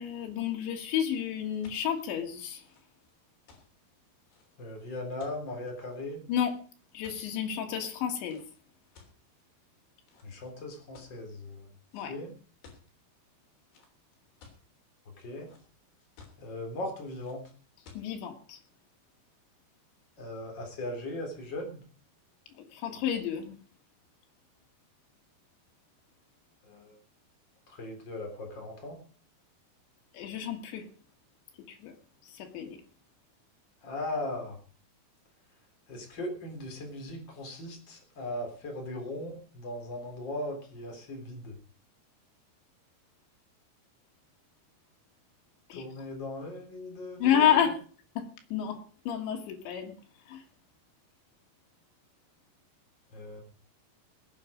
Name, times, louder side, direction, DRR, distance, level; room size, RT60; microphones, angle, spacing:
voice 1, 0.0-2.6 6.3-6.6 6.9-8.4 11.9-12.2 18.0-18.6 22.6-23.6 30.1-30.9 31.7-31.9 32.2-32.8 45.7-45.8 47.2-47.8 48.2-49.9 50.3-50.4, left 9 dB, 90° left, 3 dB, 4.1 m, -30 dB
sound 1, 1.4-7.5 8.2-8.5 9.0-9.7 10.1-10.5 10.9-11.3 11.9-12.1 12.4-12.9 13.7-14.6 15.1-15.8 16.2-16.6 17.2-17.4 17.9-18.1, left 5 dB, 65° left, 5.2 m, -56 dB
voice 2, 4.6-6.2 10.2-11.7 12.1-12.3 15.2-15.5 16.4-17.5 20.2-21.8 26.6-27.0 27.7-29.0 33.8-34.6 35.9-41.6 45.7-47.6 53.1-53.4, left 1 dB, 25° left, 2 dB, 3.8 m, -38 dB
20.0 x 9.0 x 5.2 m, 0.41 s
omnidirectional pair, 5.0 m